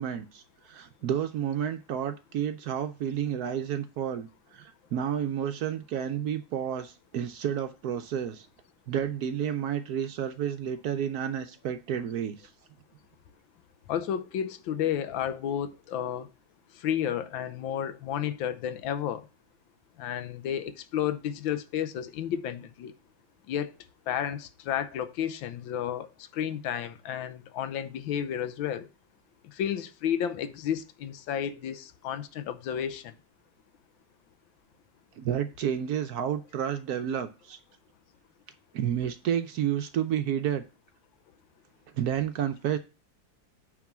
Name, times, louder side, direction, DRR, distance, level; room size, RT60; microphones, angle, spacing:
voice 1, 0.0-8.5 8.9-12.5 35.2-37.6 38.7-40.6 41.9-42.8, right 9 dB, 65° right, 1.0 m, -30 dB
voice 2, 13.9-16.3 16.8-19.3 20.0-22.9 23.5-23.7 24.1-26.1 26.3-28.9 29.5-33.1, left 9 dB, 85° left, 1.5 m, -32 dB
8.5 x 3.8 x 5.9 m
omnidirectional pair, 2.1 m